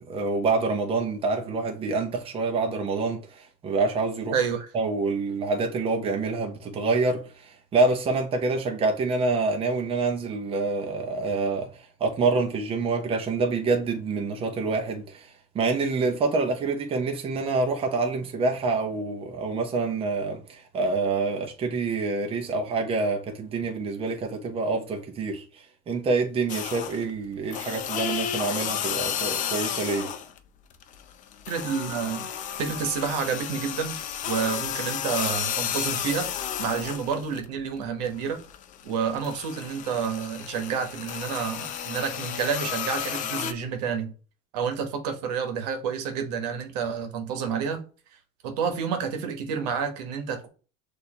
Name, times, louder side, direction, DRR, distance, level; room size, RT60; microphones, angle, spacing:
voice 1, 0.0-4.4 4.7-11.7 12.0-30.1, right 3 dB, 30° right, 1.0 m, -27 dB
voice 2, 4.3-4.7 31.5-32.3 32.6-34.0 34.2-36.3 36.6-38.4 38.8-44.1 44.5-47.8 48.4-50.5, right 6 dB, 85° right, 1.1 m, -29 dB
sound 1, 26.5-27.1 27.5-30.4 30.7-37.5 37.8-43.5, left 9 dB, 40° left, 0.6 m, -32 dB
6.3 x 2.8 x 2.9 m
supercardioid pair, 125°, 20 cm